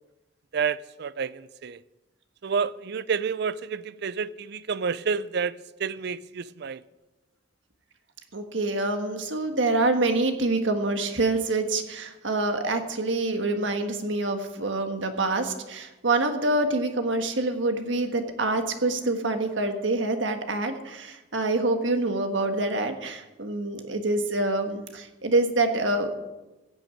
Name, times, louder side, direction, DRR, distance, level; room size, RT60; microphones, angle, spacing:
voice 1, 0.5-1.8 2.4-6.8, right 6 dB, 60° right, 0.5 m, -29 dB
voice 2, 8.3-26.2, right 2 dB, 75° right, 1.6 m, -26 dB
16.0 x 6.4 x 8.5 m
head